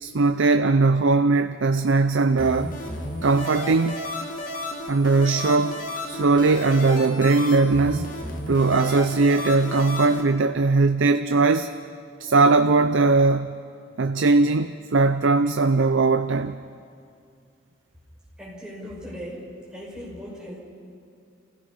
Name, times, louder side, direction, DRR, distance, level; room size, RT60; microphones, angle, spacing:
voice 1, 0.0-2.8 3.2-4.0 4.9-5.8 6.0-8.1 8.5-11.7 12.2-13.6 14.0-16.6, right 3 dB, 75° right, 9 dB, 0.5 m, -20 dB
sound 1, 2.4-10.2, left 1 dB, 40° left, 1.9 m, -33 dB
voice 2, 18.4-20.6, equal, 5° right, -7 dB, 6.1 m, -38 dB
28.5 x 16.5 x 5.6 m, 2.4 s
head